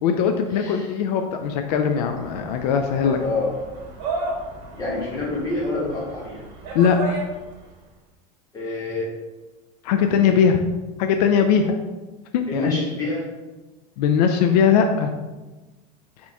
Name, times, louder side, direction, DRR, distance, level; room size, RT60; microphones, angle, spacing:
voice 1, 0.0-3.2 6.7-7.2 9.8-10.6 11.0-11.8 12.3-12.7 14.0-15.1, left 7 dB, 75° left, 5 dB, 0.4 m, -20 dB
voice 2, 0.5-0.9 3.0-3.5 4.8-6.4 8.5-9.1 10.0-10.4 12.5-13.2, left 2 dB, 15° left, -7 dB, 1.5 m, -27 dB
sound 1, 1.4-7.7, right 3 dB, 55° right, 1.5 m, -34 dB
4.2 x 3.0 x 3.4 m, 1.2 s
supercardioid pair, 160°, 21 cm